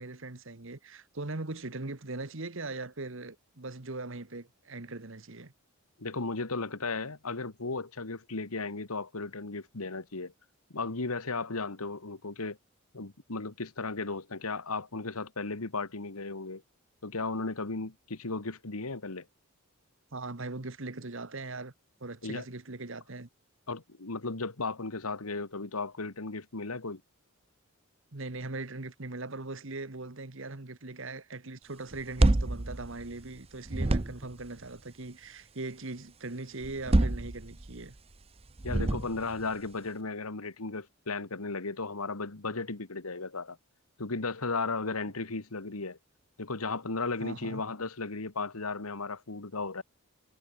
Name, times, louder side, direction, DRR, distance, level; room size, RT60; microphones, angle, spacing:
voice 1, 0.0-5.5 20.1-21.7 22.0-23.3 28.1-37.9 47.2-47.6, right 2 dB, 55° right, 1.4 m, -40 dB
voice 2, 6.0-10.3 10.7-12.6 12.9-16.6 17.0-19.3 22.2-22.5 23.7-27.0 38.6-43.6 44.0-46.0 46.4-49.8, left 3 dB, 80° left, 1.7 m, -35 dB
sound 1, 31.9-33.4 33.7-34.5 36.6-37.8 38.6-39.4, right 1 dB, 25° right, 0.7 m, -27 dB
head